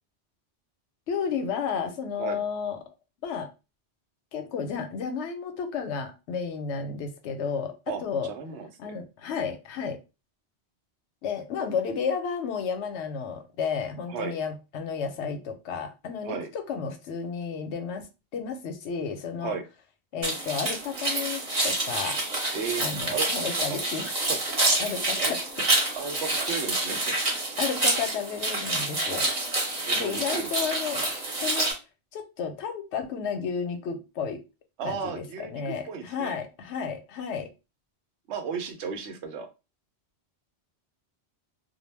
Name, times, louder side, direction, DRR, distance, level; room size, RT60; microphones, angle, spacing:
voice 1, 1.1-2.8 3.2-3.5 4.3-7.7 8.0-8.3 8.8-10.0 11.2-19.6 20.1-22.2 22.8-24.1 24.8-25.4 27.6-29.3 30.0-31.0 31.4-31.7 32.1-34.4 34.8-37.5, left 6 dB, 85° left, 0.9 m, -32 dB
voice 2, 7.9-8.9 14.1-14.4 16.2-16.5 19.4-19.6 22.5-23.8 24.7-24.8 25.2-25.3 26.0-27.2 29.9-30.5 34.8-36.4 38.3-39.5, right 6 dB, 85° right, 0.9 m, -35 dB
sound 1, 20.2-31.7, right 2 dB, 40° right, 0.9 m, -27 dB
2.2 x 2.0 x 3.2 m
omnidirectional pair, 1.1 m